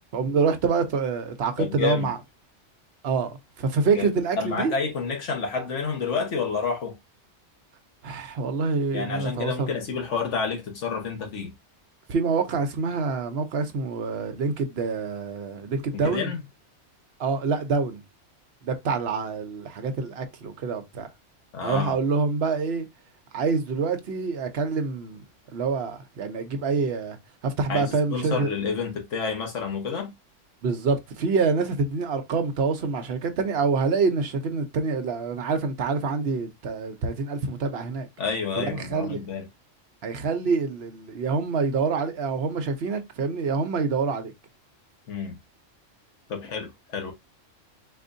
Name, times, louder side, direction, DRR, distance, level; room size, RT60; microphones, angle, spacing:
voice 1, 0.1-2.2 3.0-4.7 8.0-9.7 12.1-16.3 17.2-18.0 18.6-21.1 21.6-22.9 23.3-25.2 25.5-27.2 27.4-28.5 30.6-38.1 38.6-39.2 40.0-44.3, right 4 dB, 60° right, 0.9 m, -26 dB
voice 2, 1.6-2.1 3.9-4.1 4.4-7.0 8.9-11.5 15.9-16.4 21.5-22.0 27.7-30.1 38.2-39.5 45.1-45.4 46.3-47.1, left 5 dB, 70° left, 1.4 m, -29 dB
4.2 x 2.6 x 2.5 m
omnidirectional pair, 1.3 m